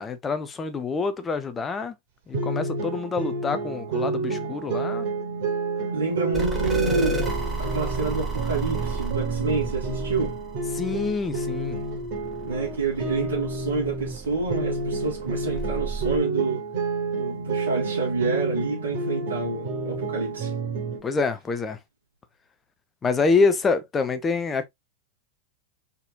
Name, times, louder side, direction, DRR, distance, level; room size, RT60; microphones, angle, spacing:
voice 1, 0.0-1.9 2.3-5.1 10.7-11.8 21.0-21.8 23.0-24.7, left 4 dB, 20° left, 0.8 m, -26 dB
sound 1, 2.3-14.2 14.5-21.0, right 3 dB, 50° right, 2.5 m, -30 dB
voice 2, 5.9-7.2 7.6-10.4 12.4-16.7 17.1-20.5, right 4 dB, 70° right, 2.1 m, -28 dB
sound 2, 6.3-16.2, right 2 dB, 15° right, 2.3 m, -33 dB
4.4 x 4.1 x 2.7 m
figure-of-eight pair, 90°, 0 cm